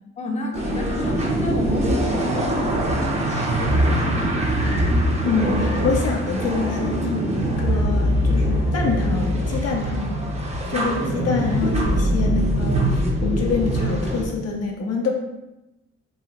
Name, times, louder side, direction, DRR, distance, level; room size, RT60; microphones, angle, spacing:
voice 1, 0.2-4.8 10.7-10.9, left 1 dB, 25° left, 0 dB, 0.8 m, -31 dB
sound 1, 0.5-14.2, right 1 dB, 20° right, 0.9 m, -22 dB
voice 2, 5.2-10.2 10.7-15.1, left 4 dB, 55° left, 0 dB, 0.8 m, -26 dB
3.9 x 2.3 x 4.6 m, 0.96 s
cardioid pair, 90°, 30 cm